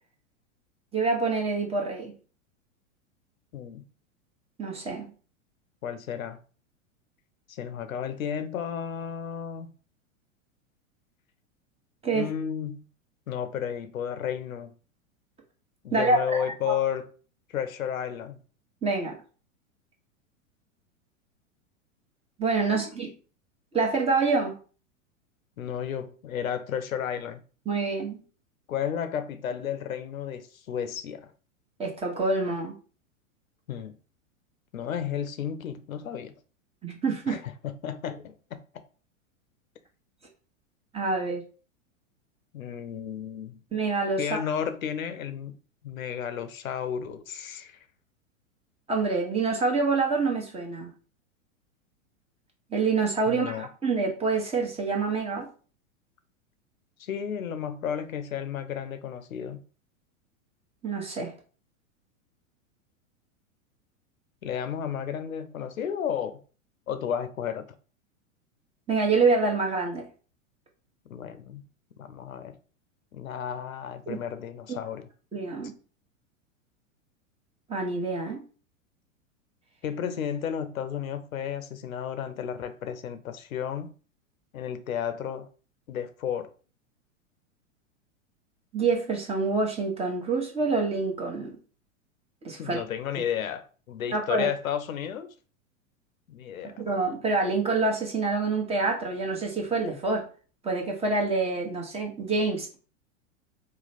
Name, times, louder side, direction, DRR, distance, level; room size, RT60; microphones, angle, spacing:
voice 1, 0.9-2.1 4.6-5.1 12.0-12.3 15.9-16.7 18.8-19.2 22.4-23.1 23.7-24.5 27.7-28.2 31.8-32.8 36.8-37.4 40.9-41.4 43.7-44.4 48.9-50.9 52.7-55.5 60.8-61.3 68.9-70.0 74.1-74.2 74.7-74.8 75.3-75.7 77.7-78.4 88.7-91.6 92.4-92.8 93.2-93.3 94.1-94.5 96.6-100.3 100.6-102.8, right 3 dB, 15° right, 1.1 m, -26 dB
voice 2, 3.5-3.9 5.8-6.4 7.5-9.7 12.1-12.9 13.3-14.8 15.8-17.1 17.5-18.4 22.7-22.9 25.6-27.4 28.7-31.3 33.7-34.0 34.7-36.3 37.3-38.6 42.5-43.6 44.2-45.5 45.8-47.8 53.3-53.7 57.0-59.6 64.4-66.4 66.9-67.7 71.1-71.6 72.0-72.5 73.1-75.1 79.8-83.9 84.5-85.5 85.9-86.5 92.6-95.3 96.3-96.7, left 8 dB, 90° left, 0.7 m, -33 dB
3.1 x 2.2 x 4.1 m
hypercardioid pair, 110°, 40 cm